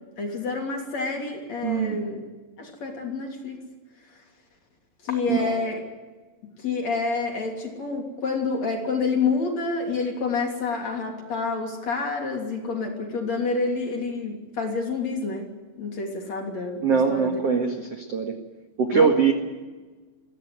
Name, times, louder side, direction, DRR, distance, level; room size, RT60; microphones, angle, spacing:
voice 1, 0.2-2.2 2.6-3.6 5.0-5.8 6.6-17.4 18.9-19.1, left 4 dB, 40° left, 1 dB, 3.6 m, -28 dB
voice 2, 1.6-2.0 5.3-5.6 16.8-18.3 18.8-19.3, right 6 dB, 60° right, 4 dB, 1.6 m, -22 dB
22.5 x 16.5 x 9.6 m, 1.3 s
omnidirectional pair, 5.7 m